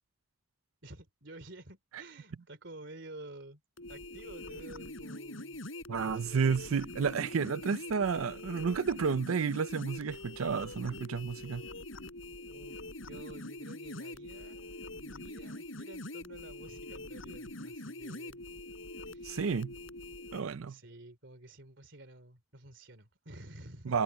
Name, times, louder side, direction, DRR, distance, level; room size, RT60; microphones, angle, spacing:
voice 1, 0.8-3.6 3.9-5.6 5.9-6.6 12.5-18.5 19.1-19.4 20.7-24.0, right 2 dB, 60° right, 3.5 m, -51 dB
sound 1, 3.8-20.4, left 2 dB, 70° left, 7.2 m, -44 dB
voice 2, 5.9-11.6 19.2-19.7 20.3-20.8 23.9-24.0, right 5 dB, 90° right, 0.5 m, -31 dB
head